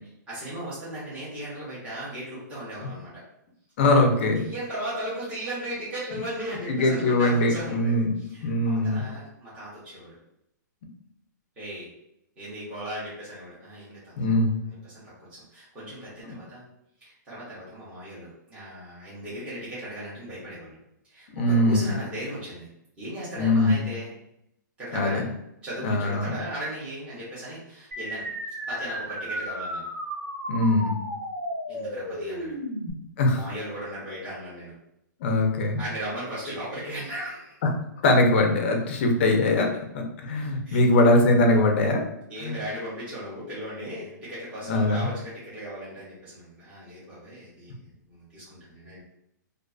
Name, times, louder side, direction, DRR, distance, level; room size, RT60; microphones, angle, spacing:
voice 1, 0.3-3.2 4.3-10.2 11.6-11.9 12.4-14.4 14.7-15.0 15.3-16.6 17.0-20.8 21.0-22.7 23.0-24.1 24.8-25.3 25.6-28.3 28.7-29.8 31.7-32.5 33.3-34.7 35.8-37.6 40.6-40.8 41.5-41.6 42.3-49.0, right 1 dB, 10° right, -11 dB, 0.7 m, -37 dB
voice 2, 3.8-4.4 6.7-8.1 8.4-9.1 14.2-14.5 21.3-21.9 23.4-23.8 24.9-25.2 25.8-26.3 30.5-31.0 33.2-33.5 35.2-35.8 38.0-42.0 42.4-42.6 44.7-45.1, left 2 dB, 35° left, 3 dB, 0.4 m, -22 dB
sound 1, 27.9-32.9, equal, 40° right, 0.9 m, -33 dB
2.4 x 2.4 x 2.3 m, 0.78 s
hypercardioid pair, 165°, 10 cm